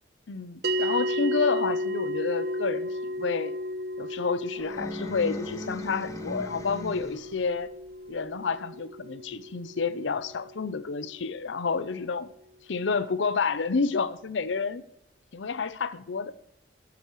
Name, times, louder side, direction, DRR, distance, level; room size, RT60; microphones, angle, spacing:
voice 1, 0.3-3.6 4.0-7.7 8.1-12.3 12.7-14.8 15.3-16.3, left 4 dB, 85° left, 15 dB, 0.6 m, -29 dB
sound 1, 0.6-11.2, equal, 60° right, 0.7 m, -34 dB
sound 2, 4.5-7.4, left 1 dB, 15° left, 1.0 m, -38 dB
14.5 x 7.9 x 3.1 m, 0.76 s
head